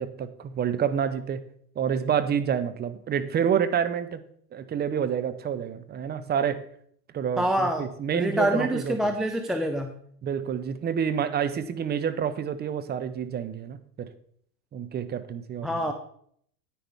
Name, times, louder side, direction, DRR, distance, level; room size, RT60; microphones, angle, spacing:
voice 1, 0.0-1.4 1.8-4.2 4.5-6.6 7.1-9.0 10.2-14.1 14.7-15.8, right 8 dB, 20° right, 12 dB, 0.8 m, -28 dB
voice 2, 7.4-7.9 8.1-9.9 15.6-15.9, equal, ahead, 5 dB, 0.4 m, -26 dB
10.5 x 9.5 x 3.5 m, 0.64 s
hypercardioid pair, 100°, 47 cm